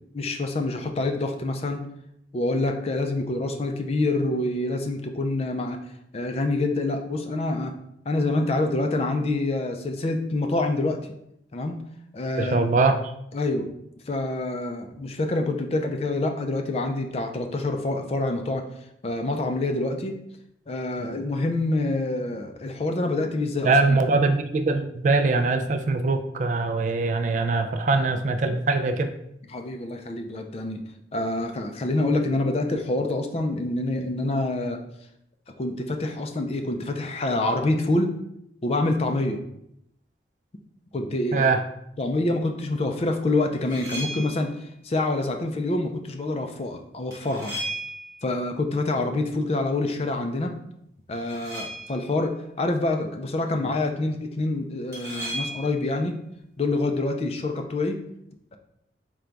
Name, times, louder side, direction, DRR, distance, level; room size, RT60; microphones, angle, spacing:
voice 1, 0.1-1.8 2.3-5.8 6.1-7.7 8.1-11.1 11.5-11.8 12.1-12.8 13.3-13.7 14.1-18.6 19.0-20.2 20.7-24.0 29.5-30.8 31.1-34.8 35.6-38.1 38.6-39.4 40.9-41.5 42.0-44.5 44.8-47.6 48.2-50.6 51.1-52.3 52.6-56.2 56.6-58.0, left 2 dB, 35° left, 5 dB, 0.4 m, -26 dB
voice 2, 12.4-13.1 23.6-29.1 41.3-41.6, right 3 dB, 45° right, 7 dB, 0.3 m, -22 dB
sound 1, 43.5-44.5 47.1-48.3 51.1-52.1 54.9-55.9, right 1 dB, 15° right, 1.1 m, -35 dB
3.8 x 2.2 x 4.5 m, 0.77 s
head